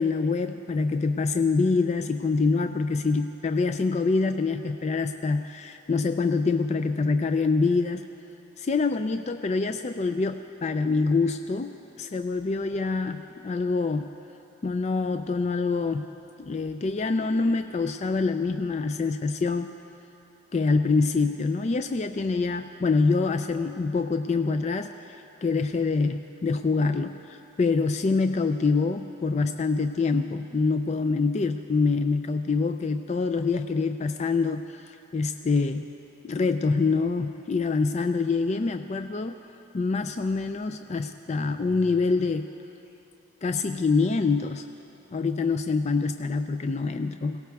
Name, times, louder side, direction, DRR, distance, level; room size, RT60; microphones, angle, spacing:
voice 1, 0.0-8.1 8.6-14.1 14.6-16.1 16.4-19.7 20.5-24.9 25.4-35.9 36.2-39.3 39.7-42.5 43.4-44.6 45.1-47.4, left 4 dB, 30° left, 8 dB, 0.3 m, -25 dB
23.0 x 17.5 x 3.5 m, 3.0 s
head